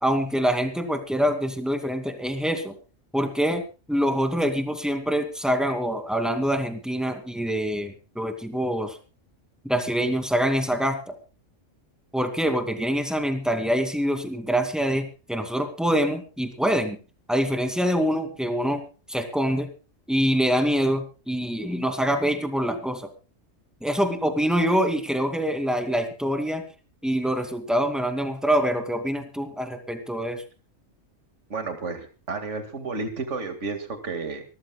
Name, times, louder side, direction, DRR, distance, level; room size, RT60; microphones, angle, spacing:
voice 1, 0.0-2.8 3.1-9.0 9.6-11.2 12.1-17.0 17.3-19.7 20.1-23.1 23.8-26.7 27.0-30.4, equal, ahead, 6 dB, 2.4 m, -25 dB
voice 2, 31.5-34.4, right 4 dB, 65° right, 7 dB, 2.4 m, -32 dB
25.5 x 14.0 x 2.3 m, 0.32 s
omnidirectional pair, 1.3 m